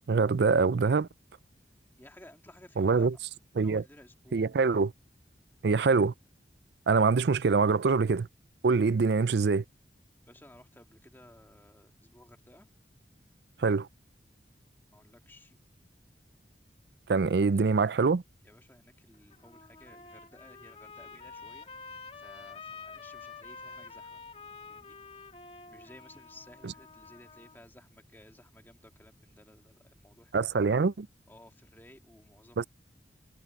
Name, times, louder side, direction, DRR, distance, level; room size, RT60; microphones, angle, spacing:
voice 1, 0.1-1.1 2.8-3.1 3.6-3.8 4.3-4.9 5.6-6.1 6.9-8.3 8.6-9.6 13.6-13.9 17.1-18.2 26.6-26.7 30.3-31.1 32.6-32.7, right 4 dB, 70° right, 0.5 m, -24 dB
voice 2, 2.0-3.2 3.6-4.5 10.3-12.7 14.9-15.6 17.3-17.7 18.4-24.2 24.7-25.0 25.7-30.8 31.3-32.7, left 1 dB, 10° left, 2.4 m, -56 dB
Trumpet, 19.1-27.6, left 4 dB, 35° left, 2.7 m, -48 dB
head